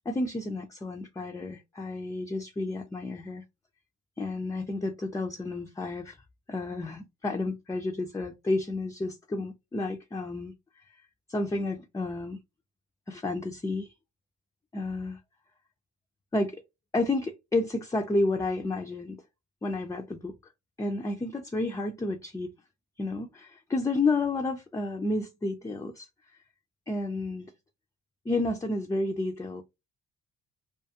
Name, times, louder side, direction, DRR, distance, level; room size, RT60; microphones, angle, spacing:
voice 1, 0.1-3.4 4.2-6.2 6.5-10.5 11.3-12.4 13.1-13.9 14.7-15.2 16.3-16.6 16.9-19.2 19.6-20.3 20.8-22.5 23.0-26.1 26.9-27.5 28.3-29.6, left 2 dB, 10° left, 0.3 m, -31 dB
2.4 x 2.4 x 2.6 m
cardioid pair, 90°, 30 cm